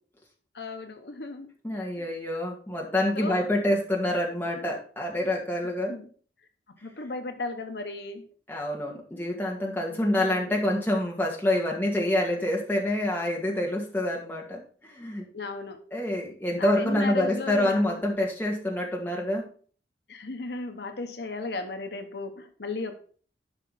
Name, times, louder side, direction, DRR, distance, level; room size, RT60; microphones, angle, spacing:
voice 1, 0.5-1.5 2.0-2.1 2.8-3.4 5.9-6.1 6.8-8.2 9.9-10.6 15.3-15.8 16.6-18.0 20.1-22.9, left 3 dB, 70° left, 7 dB, 1.0 m, -35 dB
voice 2, 1.6-5.9 8.5-15.2 15.9-19.5, left 1 dB, 10° left, -1 dB, 2.0 m, -27 dB
11.5 x 5.6 x 4.1 m, 0.44 s
head